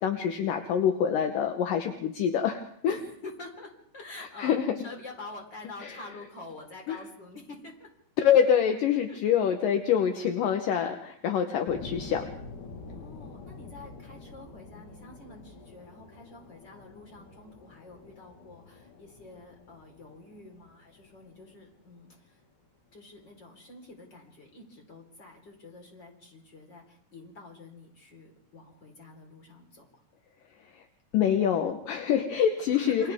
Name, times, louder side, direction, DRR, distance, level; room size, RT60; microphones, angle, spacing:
voice 1, 0.0-3.0 4.2-4.7 5.8-6.0 6.9-7.0 8.2-12.3 30.7-30.9 31.1-33.1, left 8 dB, 70° left, 5 dB, 2.2 m, -26 dB
voice 2, 2.9-7.9 9.1-9.2 11.6-11.8 12.9-22.4 22.9-29.9 32.7-33.1, left 2 dB, 25° left, 1 dB, 4.6 m, -47 dB
sound 1, 11.7-22.4, left 4 dB, 55° left, 2.8 m, -47 dB
28.5 x 26.0 x 3.7 m, 0.69 s
omnidirectional pair, 5.1 m